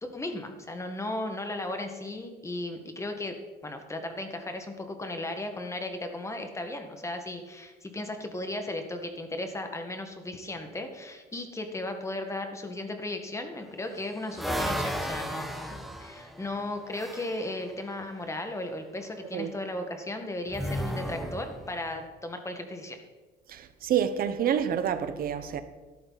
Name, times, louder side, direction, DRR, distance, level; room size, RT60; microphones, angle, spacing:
voice 1, 0.0-3.3 3.6-23.0, left 2 dB, 15° left, 1.8 m, -36 dB
sound 1, 13.6-17.5 20.5-21.9, equal, ahead, 1.2 m, -34 dB
voice 2, 23.5-25.6, right 9 dB, 60° right, 1.2 m, -28 dB
12.5 x 12.5 x 4.2 m
cardioid pair, 110°, 17 cm